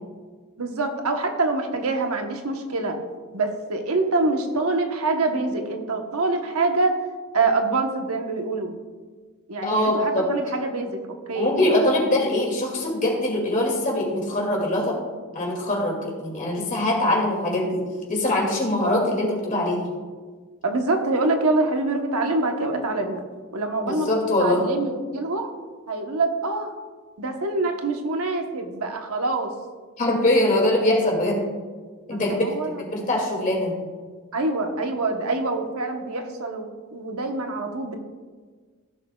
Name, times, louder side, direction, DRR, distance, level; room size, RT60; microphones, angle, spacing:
voice 1, 0.6-3.0 3.3-7.0 7.3-8.8 9.5-11.5 20.6-23.2 23.5-25.5 25.9-26.7 27.2-29.5 32.1-32.8 34.3-38.0, right 3 dB, 80° right, 4 dB, 1.1 m, -25 dB
voice 2, 9.6-10.3 11.3-15.0 15.3-19.9 23.8-24.6 30.0-31.4 32.1-33.8, left 1 dB, 35° left, -1 dB, 2.3 m, -23 dB
15.5 x 6.6 x 2.3 m, 1.5 s
head